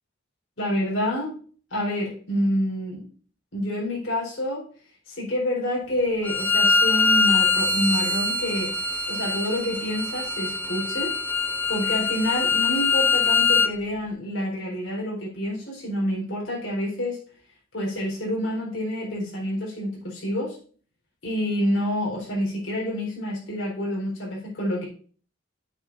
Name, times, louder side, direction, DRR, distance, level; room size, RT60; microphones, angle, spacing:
voice 1, 0.6-1.3 1.7-3.1 3.5-4.6 5.1-8.7 9.1-11.1 11.7-17.2 17.7-20.6 21.2-24.9, equal, 70° left, -4 dB, 4.4 m, -28 dB
Bowed string instrument, 6.2-13.7, left 4 dB, 10° left, 0.4 m, -23 dB
9.2 x 7.7 x 2.6 m, 0.43 s
head